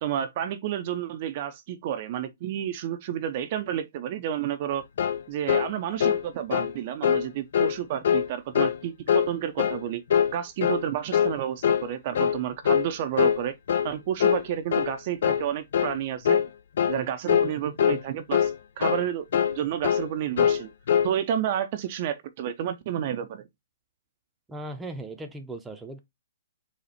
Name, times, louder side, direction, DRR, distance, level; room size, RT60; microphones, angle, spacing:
voice 1, 0.0-4.9 5.3-10.0 10.3-13.5 13.8-16.4 16.9-18.5 18.8-20.7 21.0-23.5, right 10 dB, 45° right, 0.6 m, -30 dB
sound 1, 5.0-5.2 5.5-5.7 6.0-6.2 6.5-6.7 7.0-7.3 7.5-7.8 8.0-8.3 8.5-8.8 9.1-9.3 9.6-9.8 10.1-10.3 10.6-10.8 11.1-11.4 11.6-11.9 12.1-12.4 12.6-12.9 13.2-13.4 13.7-13.9 14.2-14.4 14.7-14.9 15.2-15.4 15.7-16.0 16.2-16.5 16.8-17.0 17.3-17.5 17.8-18.0 18.3-18.5 18.8-19.0 19.3-19.6 19.8-20.1 20.4-20.6 20.9-21.1, left 8 dB, 65° left, 0.4 m, -23 dB
voice 2, 24.5-26.0, right 2 dB, 10° right, 0.7 m, -37 dB
4.2 x 2.4 x 4.1 m
hypercardioid pair, 135°, 0 cm